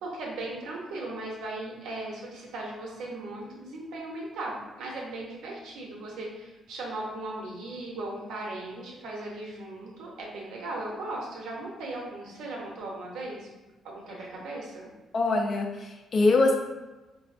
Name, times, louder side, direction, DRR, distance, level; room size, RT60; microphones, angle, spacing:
voice 1, 0.0-13.5 13.8-14.9, right 2 dB, 85° right, -2 dB, 0.6 m, -37 dB
voice 2, 15.1-16.5, left 2 dB, 50° left, 2 dB, 0.4 m, -23 dB
3.3 x 2.0 x 2.5 m, 1.1 s
cardioid pair, 90°, 0 cm